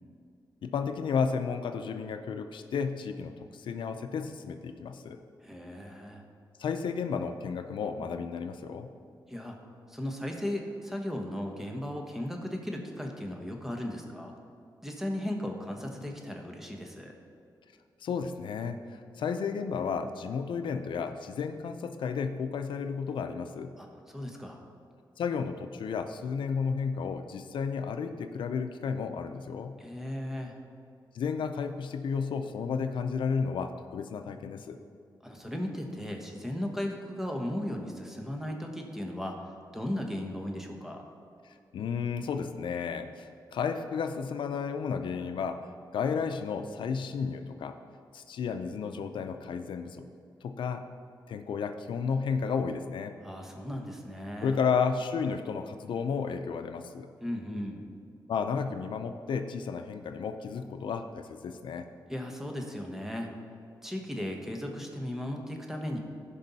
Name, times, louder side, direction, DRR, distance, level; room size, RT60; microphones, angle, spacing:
voice 1, 0.6-5.2 6.6-8.9 18.0-23.7 25.2-29.8 31.1-34.8 41.4-45.6 45.9-47.8 48.1-50.1 50.4-50.8 51.3-53.1 54.4-57.1 58.3-61.9, left 6 dB, 85° left, 8 dB, 0.5 m, -32 dB
voice 2, 5.4-6.2 9.3-9.6 9.9-14.3 14.8-17.1 23.8-24.6 29.8-30.6 35.2-39.4 39.7-41.0 53.2-54.6 57.2-57.8 62.1-63.3 63.8-66.0, left 1 dB, 5° right, 1 dB, 1.2 m, -36 dB
14.5 x 5.4 x 4.1 m, 2.4 s
wide cardioid pair, 110°, 8 cm